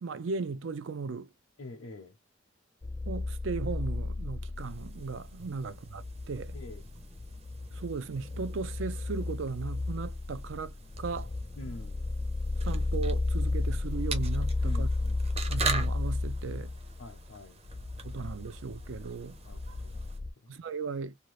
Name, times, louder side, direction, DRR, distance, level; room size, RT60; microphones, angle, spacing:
voice 1, 0.0-1.3 3.1-6.6 7.7-11.3 12.6-14.9 15.5-16.7 18.0-19.4 20.5-21.1, right 4 dB, 70° right, 0.4 m, -37 dB
voice 2, 1.6-2.2 6.5-6.8 11.6-12.1 14.6-15.2 17.0-17.6 19.4-20.1 20.4-20.5, left 2 dB, 70° left, 0.7 m, -46 dB
sound 1, 2.8-20.3, left 2 dB, 25° left, 0.4 m, -33 dB
sound 2, 4.5-20.2, right 4 dB, 30° right, 0.7 m, -43 dB
2.7 x 2.3 x 3.1 m
head